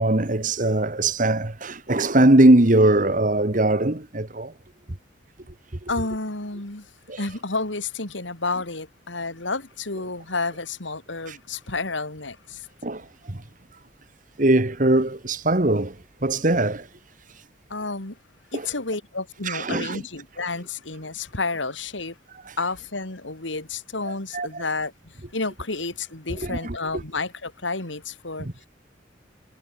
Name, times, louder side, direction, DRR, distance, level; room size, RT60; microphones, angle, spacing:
voice 1, 0.0-4.5 7.1-7.2 11.3-11.4 12.8-13.4 14.4-16.0 16.2-16.9 18.5-18.7 19.4-20.0 22.5-22.6 24.3-24.6 26.4-26.7 28.4-28.7, right 1 dB, 45° right, 1.6 m, -21 dB
voice 2, 5.9-6.9 7.2-12.7 17.7-18.2 18.5-22.2 22.6-28.5, left 3 dB, 85° left, 3.4 m, -30 dB
head